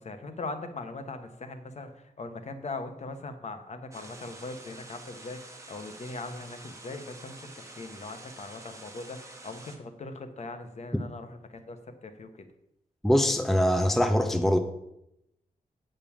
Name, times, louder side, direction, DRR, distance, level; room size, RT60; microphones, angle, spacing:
voice 1, 0.0-12.5, left 3 dB, 50° left, 8 dB, 1.0 m, -40 dB
sound 1, 3.9-9.8, right 2 dB, 20° right, 1.2 m, -48 dB
voice 2, 13.0-14.6, equal, ahead, 7 dB, 0.6 m, -23 dB
8.6 x 5.3 x 7.1 m, 0.83 s
wide cardioid pair, 155°, 15 cm